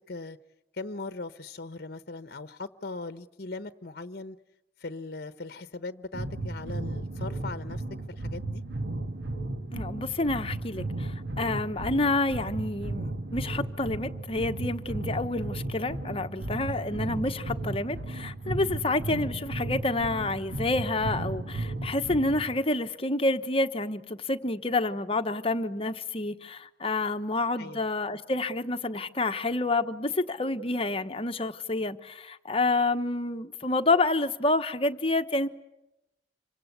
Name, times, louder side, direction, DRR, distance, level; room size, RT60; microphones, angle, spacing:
voice 1, 0.1-0.4 0.7-4.4 4.8-7.8 8.1-8.6 27.6-27.8, left 3 dB, 60° left, 1.0 m, -39 dB
sound 1, 6.1-22.5, right 2 dB, 75° right, 1.8 m, -34 dB
voice 2, 9.7-35.5, left 2 dB, 35° left, 1.2 m, -28 dB
27.5 x 24.5 x 8.2 m
head